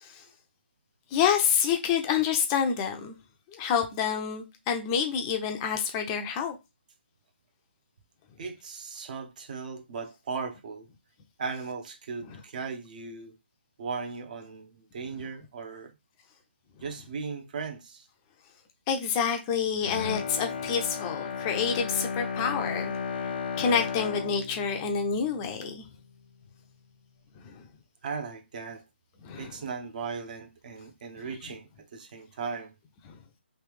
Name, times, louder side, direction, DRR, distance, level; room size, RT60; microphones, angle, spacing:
voice 1, 1.1-3.1 3.5-6.6 12.3-12.4 18.9-22.9 23.2-23.3 23.6-25.8 27.4-27.6 29.2-29.5 33.1-33.2, left 7 dB, 20° left, 0.5 m, -28 dB
voice 2, 8.4-10.9 11.4-13.3 13.8-15.9 16.8-18.1 28.0-28.8 29.4-32.7, right 5 dB, 45° right, 0.7 m, -37 dB
Bowed string instrument, 19.8-26.0 26.4-26.5, left 5 dB, 60° left, 0.8 m, -34 dB
3.2 x 3.0 x 3.3 m
figure-of-eight pair, 150°, 6 cm